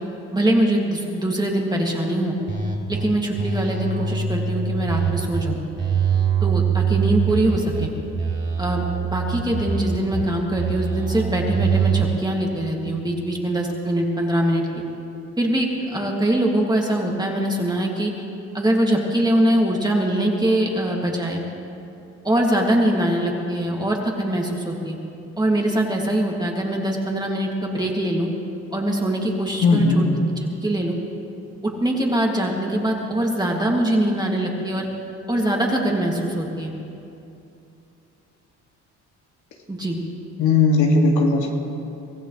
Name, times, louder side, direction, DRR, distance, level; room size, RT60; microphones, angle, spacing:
voice 1, 0.3-2.4 2.9-5.6 6.4-7.9 8.6-14.6 15.4-18.1 18.5-21.4 22.2-25.0 25.4-28.3 28.7-30.1 30.6-31.0 31.6-34.9 35.3-36.7 39.7-40.0, right 1 dB, 15° right, -1 dB, 2.7 m, -22 dB
sound 1, 2.5-3.0 3.4-5.4 5.8-7.9 8.2-10.2 10.6-12.0, right 6 dB, 40° right, 3.3 m, -23 dB
voice 2, 29.6-30.1 40.4-41.5, left 3 dB, 80° left, -1 dB, 2.5 m, -17 dB
24.0 x 15.5 x 3.4 m, 2.8 s
cardioid pair, 90°, 30 cm